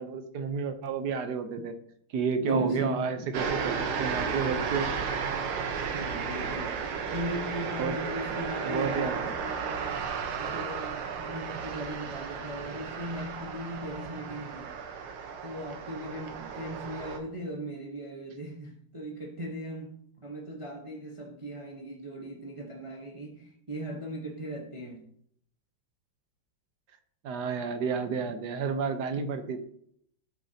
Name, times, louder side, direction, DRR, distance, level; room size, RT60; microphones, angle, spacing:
voice 1, 0.0-1.7 2.1-4.9 7.8-8.0 8.7-9.3 27.2-29.6, right 5 dB, 60° right, 1.3 m, -31 dB
voice 2, 2.4-3.1 5.9-6.8 7.1-10.0 10.4-14.7 15.4-20.0 20.2-25.0 27.6-27.9, right 1 dB, 20° right, 0.8 m, -38 dB
sound 1, 3.3-17.2, right 6 dB, 80° right, 1.9 m, -34 dB
12.5 x 6.1 x 2.8 m
omnidirectional pair, 2.3 m